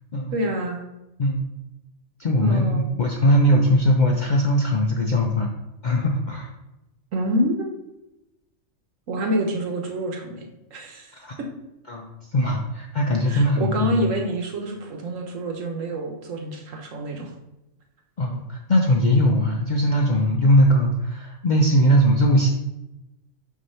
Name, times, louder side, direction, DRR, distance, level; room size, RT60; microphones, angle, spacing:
voice 1, 0.3-0.8 2.4-2.9 7.1-7.7 9.1-11.1 11.4-11.5 13.3-17.3, right 1 dB, 70° right, 1 dB, 1.3 m, -27 dB
voice 2, 2.2-5.5 5.8-6.5 11.1-11.4 11.9-14.0 18.2-22.5, equal, 55° left, 1 dB, 0.5 m, -20 dB
6.2 x 2.8 x 5.5 m, 0.94 s
omnidirectional pair, 1.4 m